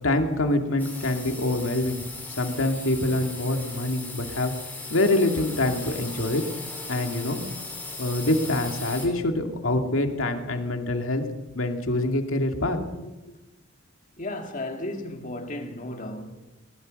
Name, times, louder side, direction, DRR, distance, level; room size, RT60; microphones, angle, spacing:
voice 1, 0.0-2.0 2.4-4.5 4.9-6.4 6.9-7.4 8.0-11.2 11.5-13.1, left 1 dB, 85° left, 2.3 m, -25 dB
sound 1, 0.8-9.1, left 3 dB, 10° left, 5.3 m, -38 dB
voice 2, 14.2-16.3, left 1 dB, 40° left, 2.3 m, -34 dB
20.0 x 20.0 x 6.5 m
head